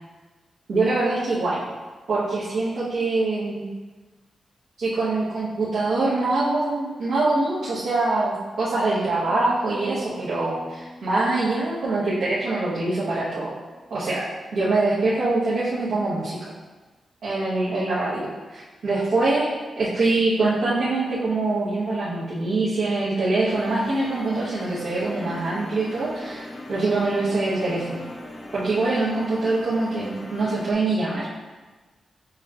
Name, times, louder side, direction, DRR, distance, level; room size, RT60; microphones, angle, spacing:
voice 1, 0.7-1.6 2.1-3.7 4.8-13.5 13.9-14.2 14.5-16.5 17.2-28.0 28.5-31.3, right 2 dB, 85° right, -10 dB, 1.2 m, -24 dB
Piano, 9.3-14.9, left 1 dB, 25° right, 0.8 m, -45 dB
sound 1, 23.5-30.7, left 1 dB, 35° left, 0.4 m, -39 dB
7.0 x 3.0 x 2.4 m, 1.2 s
wide cardioid pair, 145°, 0 cm